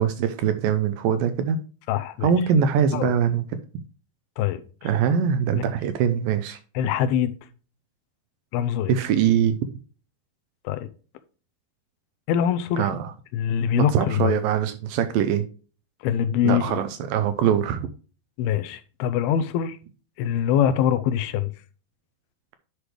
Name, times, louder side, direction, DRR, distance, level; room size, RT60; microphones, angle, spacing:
voice 1, 0.0-1.6 2.2-3.4 4.8-6.6 8.9-9.6 12.8-13.1 13.8-15.5 16.4-17.9, right 8 dB, 80° right, 2.1 m, -22 dB
voice 2, 1.9-2.3 2.9-3.1 4.4-4.9 5.5-5.8 6.8-7.3 8.5-8.9 10.7-10.9 12.3-12.9 13.3-14.4 16.0-16.8 18.4-19.8 20.2-21.5, left 9 dB, 85° left, 2.5 m, -24 dB
10.5 x 4.9 x 3.3 m
omnidirectional pair, 4.4 m